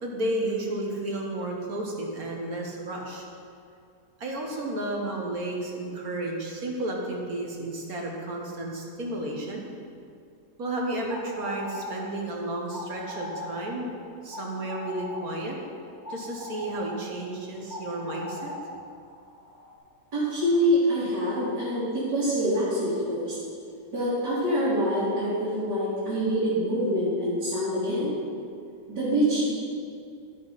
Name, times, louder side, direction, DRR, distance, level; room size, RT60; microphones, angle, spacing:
voice 1, 0.0-3.3 4.2-9.6 10.6-13.9 14.2-15.6 16.1-18.5, right 1 dB, 55° right, -1 dB, 1.9 m, -32 dB
sound 1, 11.0-19.7, left 1 dB, 40° left, 2.7 m, -40 dB
voice 2, 20.1-23.4 23.9-28.1 28.9-29.5, equal, 70° right, -12 dB, 3.8 m, -25 dB
12.0 x 11.0 x 4.3 m, 2.4 s
omnidirectional pair, 1.9 m